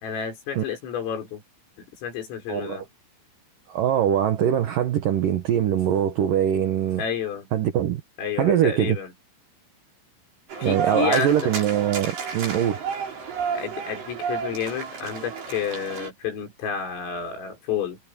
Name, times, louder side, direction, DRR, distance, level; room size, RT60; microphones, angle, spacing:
voice 1, 0.0-1.4 1.8-2.8 7.0-7.5 8.2-9.1 10.6-11.4 13.5-18.0, left 7 dB, 75° left, 8.2 m, -30 dB
voice 2, 2.5-2.8 3.7-7.0 7.5-8.0 8.4-9.0 10.6-12.8, right 10 dB, 85° right, 1.9 m, -22 dB
sound 1, 10.5-16.1, right 6 dB, 55° right, 8.1 m, -32 dB
omnidirectional pair, 6.0 m